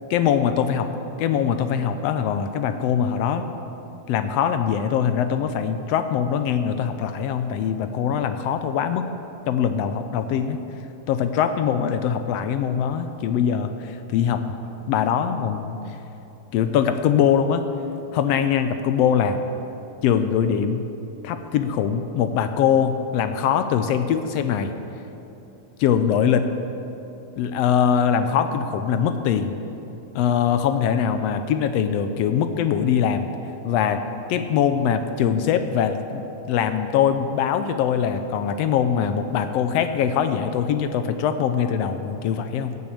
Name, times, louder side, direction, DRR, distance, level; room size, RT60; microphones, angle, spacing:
voice 1, 0.1-3.5 4.1-9.1 9.5-10.6 11.1-14.4 14.9-15.8 16.5-17.6 18.1-19.4 20.0-20.8 21.2-24.7 25.8-26.5 27.4-29.6 30.1-33.3 33.6-34.0 34.3-42.8, left 8 dB, 75° left, 9 dB, 1.5 m, -22 dB
15.0 x 6.5 x 8.6 m, 2.9 s
omnidirectional pair, 3.3 m